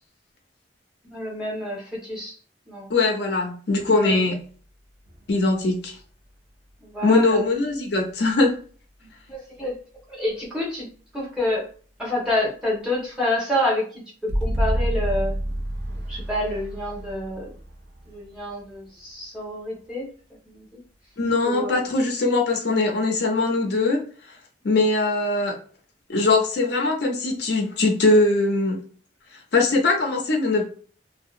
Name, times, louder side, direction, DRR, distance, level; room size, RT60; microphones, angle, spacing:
voice 1, 1.1-2.3 2.7-2.9 3.9-4.2 6.8-7.4 9.3-9.8 10.1-10.9 11.1-11.7 12.0-15.4 16.1-17.5 18.1-20.1 20.4-20.8 21.4-21.8, left 1 dB, 5° right, -5 dB, 1.0 m, -28 dB
voice 2, 2.9-4.4 5.3-6.0 7.0-8.6 21.2-24.0 24.6-25.6 26.1-28.8 29.5-30.6, left 3 dB, 65° left, 2 dB, 0.5 m, -21 dB
sound 1, 5.1-6.0 7.7-7.8 14.3-18.9, right 1 dB, 65° right, 0.5 m, -28 dB
2.7 x 2.2 x 2.4 m, 0.41 s
head